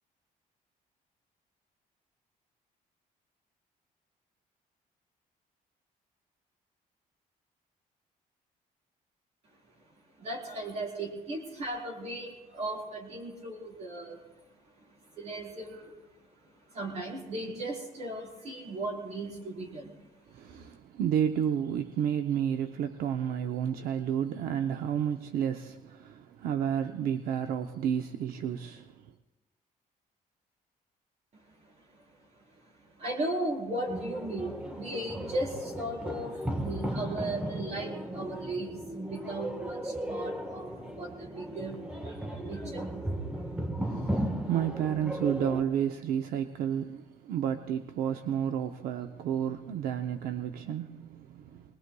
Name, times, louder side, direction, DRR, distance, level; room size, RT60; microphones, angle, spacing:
voice 1, 10.2-16.1 16.4-20.6 31.3-43.0 43.5-43.6, right 1 dB, 45° right, 4.1 m, -37 dB
voice 2, 20.3-28.8 43.8-51.6, right 9 dB, 80° right, 0.7 m, -31 dB
sound 1, 33.9-45.6, right 1 dB, 5° right, 1.3 m, -36 dB
23.5 x 20.5 x 2.3 m
cardioid pair, 130°, 15 cm